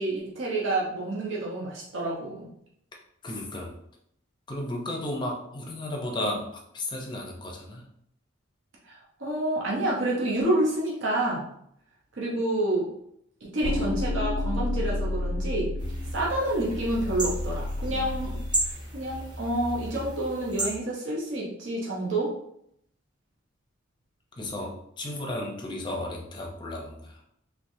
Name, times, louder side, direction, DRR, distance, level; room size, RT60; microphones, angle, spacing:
voice 1, 0.0-2.5 8.8-11.5 12.1-12.9 13.4-15.7 16.1-18.4 18.9-22.3, right 1 dB, 65° right, -4 dB, 0.8 m, -28 dB
voice 2, 3.2-3.8 4.5-7.9 17.9-18.4 24.4-27.2, left 1 dB, 20° left, 0 dB, 0.5 m, -34 dB
sound 1, 13.6-18.7, left 2 dB, 85° left, 0.4 m, -31 dB
sound 2, 15.8-20.8, right 1 dB, 20° right, 0.7 m, -34 dB
3.3 x 3.1 x 2.6 m, 0.73 s
head